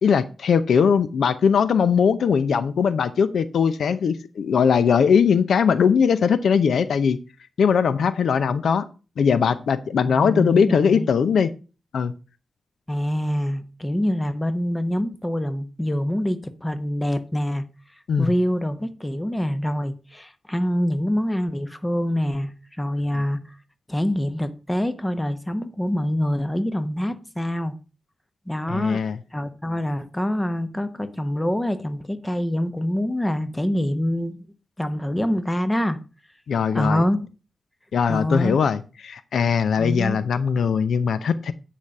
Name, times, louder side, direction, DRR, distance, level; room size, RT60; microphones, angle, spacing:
voice 1, 0.0-7.2 7.6-8.8 9.2-11.5 11.9-12.1 18.1-18.3 23.1-23.2 28.7-29.2 36.5-37.0 37.9-41.5, left 6 dB, 90° left, 0.6 m, -20 dB
voice 2, 10.0-11.1 12.9-17.7 18.2-22.5 22.8-23.4 23.9-27.8 28.5-29.0 29.3-34.5 34.8-36.0 36.7-37.2 38.1-38.6 39.8-40.2, equal, 15° left, 1.0 m, -25 dB
9.5 x 5.1 x 5.4 m
wide cardioid pair, 95°, 0 cm